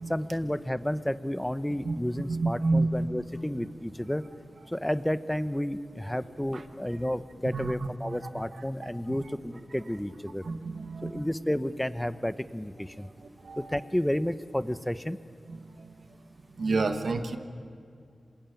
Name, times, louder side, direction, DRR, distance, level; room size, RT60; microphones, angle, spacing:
voice 1, 0.1-4.2 4.7-10.4 11.0-13.1 13.6-15.2, equal, 10° left, 12 dB, 1.1 m, -31 dB
voice 2, 2.3-3.0 7.5-7.7 8.8-8.9 10.4-11.2 13.4-13.6 15.5-15.6 15.8-15.9 16.6-17.4, right 3 dB, 75° right, 7 dB, 1.6 m, -28 dB
26.5 x 20.5 x 9.2 m, 2.3 s
cardioid pair, 40°, 0 cm